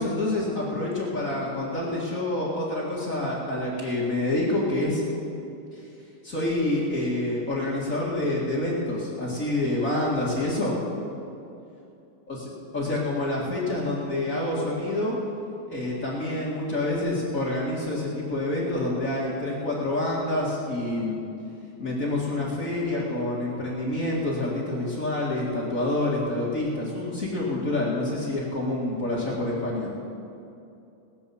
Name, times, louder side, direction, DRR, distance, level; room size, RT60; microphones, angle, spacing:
voice 1, 0.0-5.0 5.7-5.8 6.2-10.8 11.1-11.3 12.3-15.2 15.7-21.3 21.8-29.9, left 1 dB, 35° left, -6 dB, 1.4 m, -27 dB
19.0 x 7.7 x 7.0 m, 2.7 s
omnidirectional pair, 4.5 m